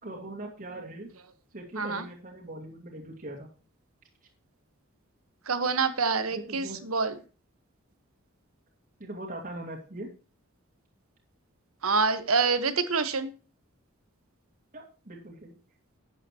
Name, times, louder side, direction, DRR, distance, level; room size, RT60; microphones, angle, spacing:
voice 1, 0.0-1.1 1.5-3.5 6.3-6.8 9.0-10.1 14.7-15.5, right 1 dB, 40° right, -1 dB, 2.3 m, -41 dB
voice 2, 5.5-7.2 11.8-13.3, right 4 dB, 80° right, 10 dB, 1.3 m, -26 dB
12.0 x 8.9 x 3.0 m, 0.36 s
head